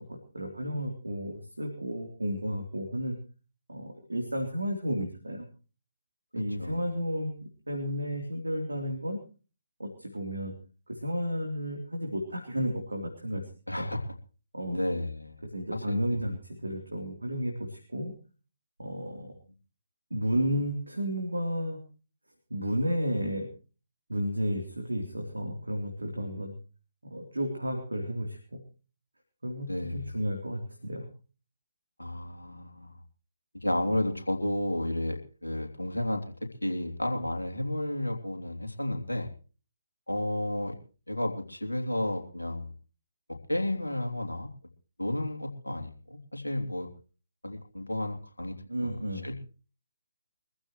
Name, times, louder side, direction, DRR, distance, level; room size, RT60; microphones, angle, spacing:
voice 1, 0.0-3.2 3.7-5.5 6.3-7.3 7.7-9.2 9.8-10.6 10.9-13.5 13.8-13.9 14.5-14.8 15.5-18.1 18.8-19.3 20.1-21.8 22.5-23.5 24.1-26.6 27.0-28.6 29.4-31.1 48.7-49.3, equal, 75° right, 3 dB, 3.4 m, -32 dB
voice 2, 13.7-14.0 14.7-15.4 15.7-16.0 19.1-19.3 29.7-30.1 32.0-32.9 33.6-36.2 36.6-39.3 40.1-40.8 41.1-42.7 43.5-44.5 45.0-46.9 47.4-48.5 49.2-49.4, left 1 dB, 80° left, 3 dB, 3.1 m, -32 dB
24.0 x 15.0 x 3.1 m, 0.37 s
figure-of-eight pair, 140°, 0 cm